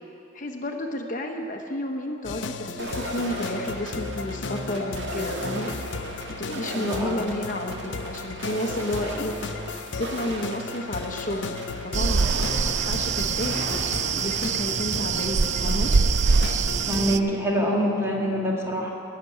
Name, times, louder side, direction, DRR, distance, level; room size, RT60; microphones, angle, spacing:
voice 1, 0.3-5.7 6.3-9.4 10.0-13.7 14.1-15.9, left 1 dB, 45° left, 3 dB, 0.9 m, -31 dB
sound 1, 2.2-17.1, left 4 dB, 85° left, 0.6 m, -35 dB
sound 2, 2.8-16.5, right 1 dB, 80° right, 1.9 m, -37 dB
voice 2, 6.7-7.2 16.8-18.9, equal, 15° right, -2 dB, 2.0 m, -25 dB
sound 3, 11.9-17.2, right 5 dB, 40° right, 0.3 m, -24 dB
16.5 x 6.8 x 9.6 m, 2.8 s
head